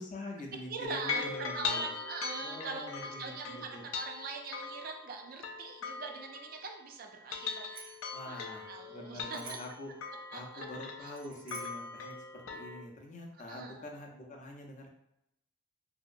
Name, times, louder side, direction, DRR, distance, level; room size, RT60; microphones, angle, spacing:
voice 1, 0.0-1.9 2.4-3.8 8.1-9.9 10.3-14.9, left 1 dB, 40° left, 0 dB, 0.5 m, -45 dB
voice 2, 0.7-8.0 8.3-9.4 10.3-10.7 11.0-11.1 13.5-13.9, right 4 dB, 45° right, 3 dB, 0.4 m, -42 dB
sound 1, 0.8-6.8 7.1-12.9, left 5 dB, 90° left, 0.4 m, -41 dB
Bicycle bell, 7.4-8.1 9.3-9.9 11.1-11.9, right 4 dB, 80° right, 0.7 m, -50 dB
2.9 x 2.7 x 2.4 m, 0.82 s
head